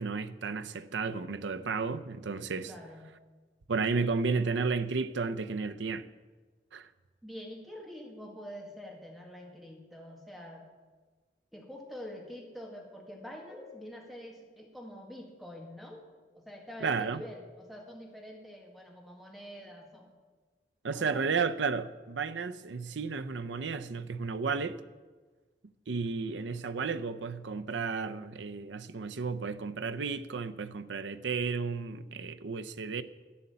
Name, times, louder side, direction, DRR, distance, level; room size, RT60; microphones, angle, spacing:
voice 1, 0.0-2.7 3.7-6.1 6.7-6.9 16.8-17.2 20.8-24.8 25.6-33.0, right 4 dB, 90° right, 0.6 m, -33 dB
voice 2, 2.6-3.0 7.2-10.6 11.5-16.0 16.4-20.1 20.9-21.4, left 1 dB, ahead, 1.9 m, -46 dB
11.5 x 6.8 x 8.4 m
head